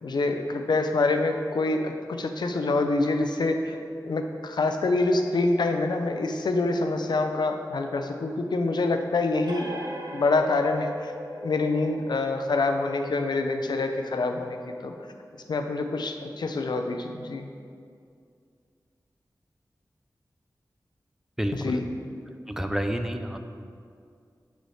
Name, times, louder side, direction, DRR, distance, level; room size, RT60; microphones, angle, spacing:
voice 1, 0.0-9.7 10.1-14.9 15.5-17.5 21.5-21.8, left 3 dB, 75° left, 5 dB, 0.4 m, -26 dB
sound 1, 9.5-16.7, equal, 75° right, 0.9 m, -41 dB
voice 2, 21.4-21.8 22.3-23.4, equal, 5° right, 6 dB, 0.3 m, -30 dB
7.6 x 4.0 x 3.2 m, 2.3 s
wide cardioid pair, 95°, 7 cm